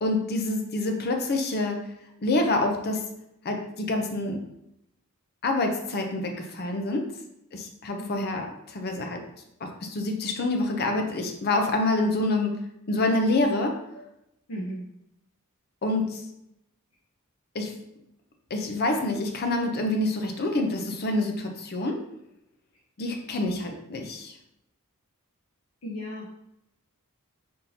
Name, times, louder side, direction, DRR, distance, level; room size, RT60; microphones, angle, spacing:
voice 1, 0.0-1.9 2.2-3.1 3.4-4.4 5.4-7.1 7.5-9.2 9.6-13.8 15.8-16.2 17.5-17.7 18.5-22.0 23.0-24.3, left 2 dB, 45° left, 3 dB, 0.6 m, -27 dB
voice 2, 14.5-14.8 25.8-26.3, equal, 75° left, -5 dB, 0.9 m, -35 dB
4.1 x 3.6 x 2.8 m, 0.81 s
head